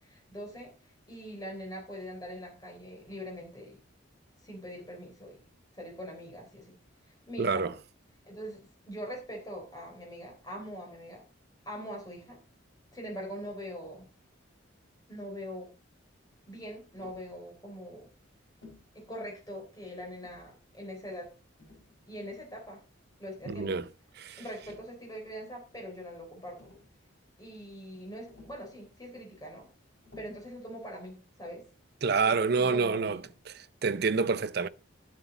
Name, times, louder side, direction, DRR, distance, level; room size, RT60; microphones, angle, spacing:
voice 1, 0.0-3.8 4.4-5.4 5.7-6.8 7.1-7.7 8.3-11.2 11.7-12.4 12.9-14.1 15.1-15.7 16.5-18.1 18.9-21.3 22.1-22.8 23.2-23.7 24.4-26.7 27.4-29.7 30.2-31.6 32.2-33.3, equal, 20° left, 3.6 m, -42 dB
voice 2, 7.4-7.7 23.5-23.8 24.2-24.4 32.0-33.2 33.5-34.7, right 4 dB, 50° right, 0.5 m, -28 dB
Tap, 17.0-17.3 18.6-18.9 20.0-20.5 21.6-22.4 23.4-23.7 24.4-24.9 26.1-26.2 26.4-27.0 28.3-28.7 30.0-30.5 32.1-32.5, left 3 dB, 65° left, 5.5 m, -55 dB
12.5 x 7.5 x 4.0 m
head